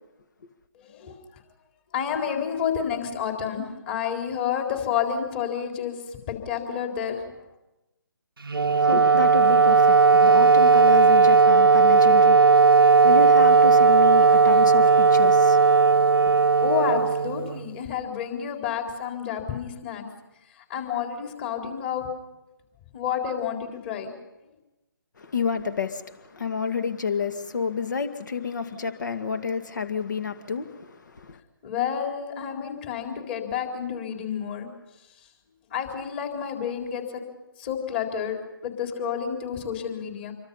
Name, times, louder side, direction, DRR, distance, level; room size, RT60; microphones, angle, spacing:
voice 1, 0.7-1.2 1.9-6.0 6.3-7.3 16.6-20.0 20.7-22.1 22.9-24.1 31.6-34.7 35.7-37.2 37.6-40.3, left 8 dB, 30° left, 4.0 m, -29 dB
Wind instrument woodwind instrument, 8.4-17.7, right 5 dB, 75° right, 0.9 m, -17 dB
voice 2, 8.6-16.4 25.2-31.4, left 6 dB, 55° left, 2.0 m, -30 dB
27.5 x 24.0 x 5.6 m
figure-of-eight pair, 145°, 12 cm